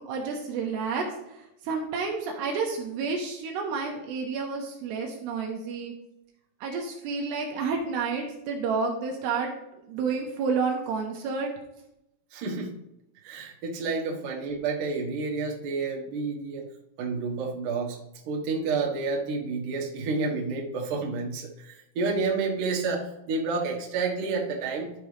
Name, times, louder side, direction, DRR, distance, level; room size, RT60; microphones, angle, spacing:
voice 1, 0.0-5.9 6.6-9.5 9.9-11.5, right 5 dB, 80° right, 1 dB, 2.9 m, -30 dB
voice 2, 12.3-12.8 13.2-16.7 17.0-18.0 18.2-24.9, right 4 dB, 60° right, -2 dB, 2.3 m, -30 dB
12.5 x 6.0 x 3.3 m, 0.85 s
omnidirectional pair, 5.1 m